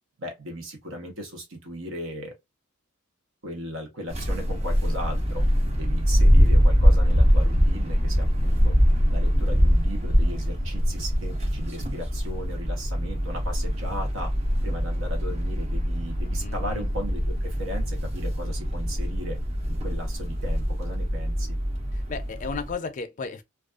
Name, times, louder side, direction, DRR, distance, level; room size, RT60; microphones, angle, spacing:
voice 1, 0.2-2.4 3.4-5.4 5.8-8.8 9.1-14.3 14.6-19.4 19.7-21.6, equal, 80° right, 0.8 m, -37 dB
sound 1, 4.1-22.7, equal, 30° right, 0.5 m, -23 dB
voice 2, 16.4-16.9 21.9-23.4, left 4 dB, 40° left, 0.4 m, -34 dB
2.4 x 2.2 x 2.3 m
head